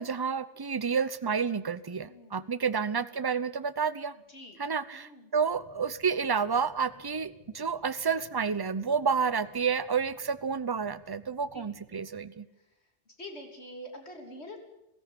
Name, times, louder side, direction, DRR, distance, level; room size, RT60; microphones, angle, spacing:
voice 1, 0.0-4.2 4.6-12.5, right 6 dB, 25° right, 16 dB, 0.7 m, -30 dB
voice 2, 2.1-2.5 4.3-4.6 4.9-5.3 9.1-9.2 11.5-11.6 12.6-12.7 13.1-14.6, left 1 dB, 70° left, 4 dB, 3.5 m, -46 dB
sound 1, 5.5-12.0, left 2 dB, 20° left, 3.2 m, -60 dB
17.0 x 15.5 x 10.0 m, 0.89 s
omnidirectional pair, 1.1 m